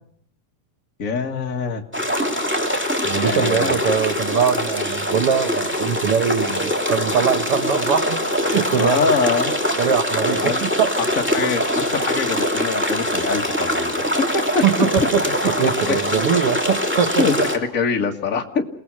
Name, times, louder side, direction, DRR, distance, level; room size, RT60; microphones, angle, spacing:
voice 1, 1.0-1.8 3.2-3.8 8.7-9.5 10.3-10.6 11.3-11.6 11.9-14.0 14.3-14.6 15.6-15.9 17.2-17.3 17.7-18.6, left 5 dB, 65° left, 3 dB, 0.7 m, -23 dB
sound 1, 1.9-17.6, equal, 5° right, 2.2 m, -23 dB
voice 2, 3.0-9.1 9.8-10.9 14.6-17.3, right 7 dB, 80° right, 9 dB, 1.2 m, -22 dB
29.0 x 18.5 x 6.2 m, 0.64 s
omnidirectional pair, 4.2 m